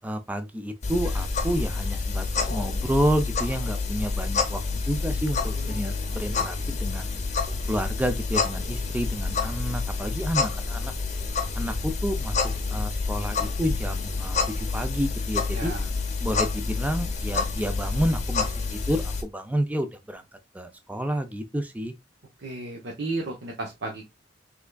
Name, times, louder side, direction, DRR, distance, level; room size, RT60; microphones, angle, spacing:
voice 1, 0.0-7.1 7.7-10.9 11.5-12.4 12.7-15.7 16.2-20.2 20.5-21.9, equal, 10° right, 0.4 m, -30 dB
sound 1, 0.8-19.2, left 4 dB, 40° left, 0.7 m, -28 dB
voice 2, 5.5-6.0 6.3-6.6 15.5-15.9 22.4-24.1, right 2 dB, 70° right, 0.7 m, -34 dB
3.5 x 3.2 x 2.2 m
head